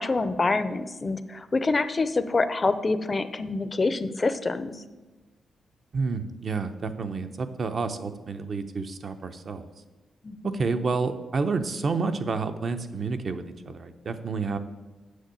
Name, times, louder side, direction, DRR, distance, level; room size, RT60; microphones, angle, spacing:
voice 1, 0.0-4.7 10.2-10.6, left 3 dB, 25° left, 12 dB, 0.5 m, -26 dB
voice 2, 5.9-9.7 10.4-14.6, right 4 dB, 45° right, 8 dB, 0.7 m, -29 dB
7.8 x 6.5 x 8.2 m, 1.2 s
wide cardioid pair, 150°, 0 cm